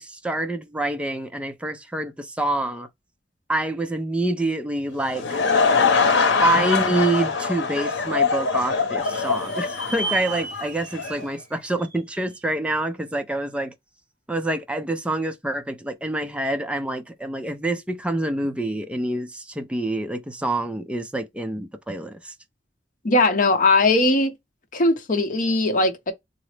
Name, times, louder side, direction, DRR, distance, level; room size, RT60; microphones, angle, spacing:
voice 1, 0.0-2.9 3.5-5.4 6.4-13.7 14.3-22.3, right 1 dB, 5° right, 0.4 m, -26 dB
Laughter / Crowd, 4.9-11.2, left 5 dB, 85° left, 0.8 m, -23 dB
sound 1, 9.0-12.5, right 4 dB, 45° right, 2.1 m, -35 dB
voice 2, 23.0-24.3 24.7-26.1, left 2 dB, 50° left, 0.7 m, -19 dB
3.9 x 2.0 x 3.2 m
head